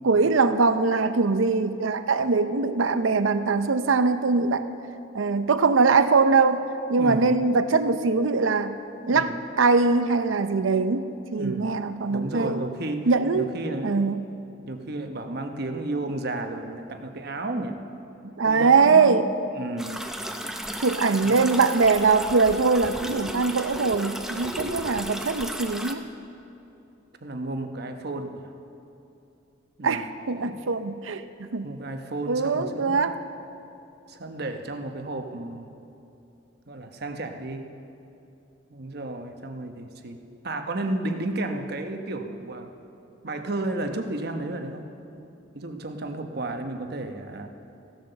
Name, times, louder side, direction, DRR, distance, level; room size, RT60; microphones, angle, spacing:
voice 1, 0.0-4.7 5.1-8.7 9.1-11.1 11.3-12.6 13.1-13.5 13.8-14.1 18.4-19.3 20.8-26.0 29.8-31.7 32.3-33.2, right 4 dB, 85° right, 11 dB, 0.6 m, -22 dB
voice 2, 6.9-7.4 9.0-9.4 11.3-11.7 12.1-13.1 13.3-14.0 14.7-17.8 18.2-19.1 19.5-20.1 21.2-21.5 27.2-28.5 29.8-30.1 30.4-30.6 31.6-33.1 34.1-35.7 36.7-37.7 38.7-42.7 43.2-44.8 45.5-47.5, right 2 dB, 55° right, 6 dB, 1.0 m, -32 dB
sound 1, 19.8-25.9, equal, 5° right, 0.7 m, -34 dB
15.5 x 12.0 x 6.7 m, 2.7 s
head